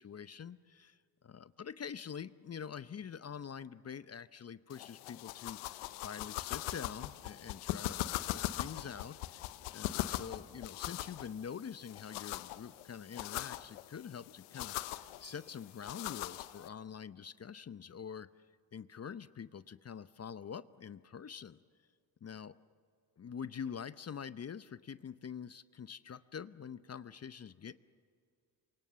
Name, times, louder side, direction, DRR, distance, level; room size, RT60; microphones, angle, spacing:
voice 1, 0.0-18.3 18.7-21.6 22.2-22.6 23.2-27.8, left 7 dB, 30° left, 15 dB, 0.7 m, -46 dB
sound 1, 4.7-16.7, left 16 dB, 85° left, 0.8 m, -41 dB
sound 2, 15.2-16.7, right 5 dB, 45° right, 2.9 m, -65 dB
28.0 x 24.0 x 6.9 m, 2.2 s
hypercardioid pair, 55°, 49 cm